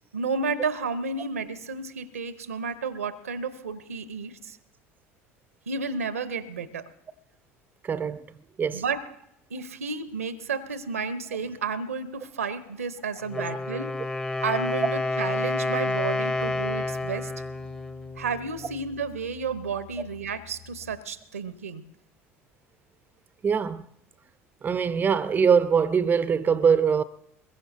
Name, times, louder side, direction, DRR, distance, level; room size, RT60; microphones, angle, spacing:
voice 1, 0.1-4.6 5.7-6.9 8.7-9.1 9.5-14.0 14.4-17.3 18.2-21.8, right 4 dB, 80° right, 0.8 m, -32 dB
voice 2, 7.8-8.3 8.6-8.8 23.4-23.9 24.6-27.0, right 6 dB, 25° right, 0.6 m, -22 dB
Wind instrument woodwind instrument, 13.2-19.0, left 2 dB, 10° left, 0.9 m, -29 dB
sound 1, 16.3-21.4, left 17 dB, 50° left, 6.6 m, -51 dB
23.5 x 21.5 x 2.6 m
figure-of-eight pair, 65°, 8 cm